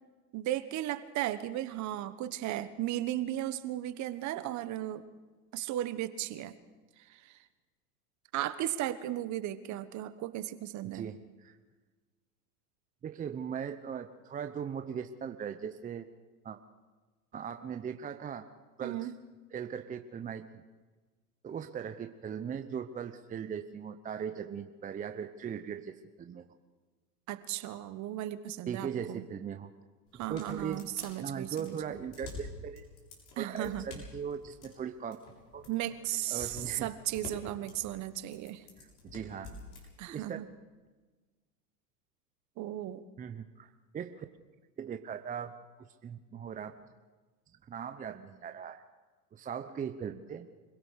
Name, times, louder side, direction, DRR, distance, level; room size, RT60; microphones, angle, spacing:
voice 1, 0.3-5.0 5.5-6.5 7.1-7.4 8.3-11.0 18.8-19.1 27.3-29.2 30.1-32.0 33.4-33.8 35.7-38.6 40.0-40.5 42.6-43.0, right 13 dB, 40° right, 13 dB, 1.3 m, -36 dB
voice 2, 10.8-11.6 13.0-16.1 16.4-16.6 17.3-18.5 18.8-19.1 19.5-20.6 21.4-26.4 28.7-29.7 30.3-30.8 31.2-32.9 33.4-35.2 35.5-35.6 36.3-36.9 38.8-39.5 40.1-40.4 43.2-44.3 44.8-45.5 46.0-46.7 47.6-48.8 49.3-50.5, right 7 dB, 15° right, 8 dB, 0.8 m, -39 dB
sound 1, 30.1-39.8, left 4 dB, 50° left, 7.5 m, -48 dB
25.5 x 17.0 x 6.6 m, 1.3 s
hypercardioid pair, 110°, 46 cm